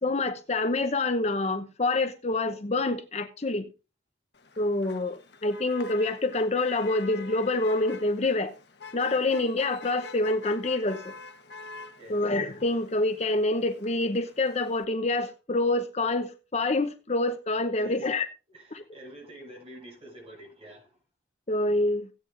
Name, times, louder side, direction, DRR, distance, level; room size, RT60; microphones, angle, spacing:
voice 1, 0.0-3.7 4.6-8.5 8.9-11.1 12.1-18.3 21.5-22.1, left 2 dB, 35° left, 0.8 m, -27 dB
Motor vehicle (road), 4.3-14.8, left 4 dB, 65° left, 1.2 m, -46 dB
voice 2, 12.0-12.3 17.7-18.1 18.5-21.0, right 1 dB, 35° right, 6.6 m, -47 dB
17.0 x 8.9 x 2.5 m
head